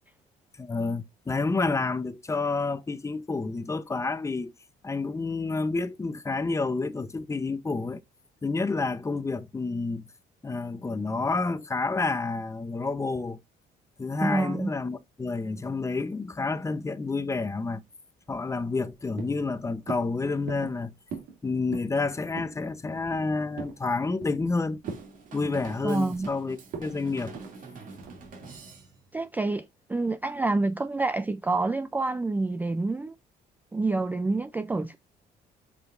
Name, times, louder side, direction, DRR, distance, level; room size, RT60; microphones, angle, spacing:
voice 1, 0.6-4.5 4.8-8.0 8.4-10.1 10.4-13.4 14.0-17.8 18.3-20.9 21.4-24.8 25.3-27.4, left 3 dB, 15° left, 0.7 m, -29 dB
voice 2, 14.2-14.7 25.8-26.3 29.1-33.1 33.7-35.0, right 3 dB, 10° right, 0.4 m, -27 dB
sound 1, 18.3-18.9 19.2-19.5 19.9-20.1 20.5-20.8 21.1-21.4 21.6-22.0 22.4-22.6 23.0-23.8 24.2-24.5 24.8-25.1 25.4-26.3 26.7-26.9 27.3-27.5 28.0-28.3, right 5 dB, 75° right, 2.3 m, -40 dB
Drum kit / Drum, 24.8-29.2, right 4 dB, 50° right, 2.4 m, -46 dB
7.8 x 5.0 x 2.5 m
cardioid pair, 110°, 17 cm